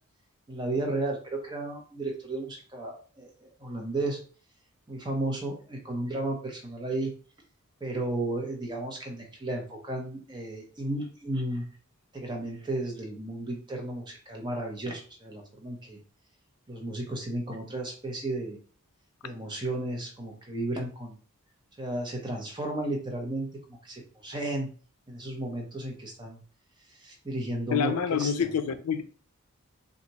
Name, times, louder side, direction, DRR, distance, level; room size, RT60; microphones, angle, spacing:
voice 1, 0.5-4.2 4.9-7.1 7.8-11.7 12.1-16.0 16.7-18.6 19.2-21.2 21.8-23.5 23.8-24.7 25.1-26.4 27.0-28.3, right 1 dB, 20° right, 0.8 m, -33 dB
voice 2, 27.7-29.0, left 7 dB, 85° left, 0.4 m, -27 dB
2.9 x 2.4 x 4.0 m
head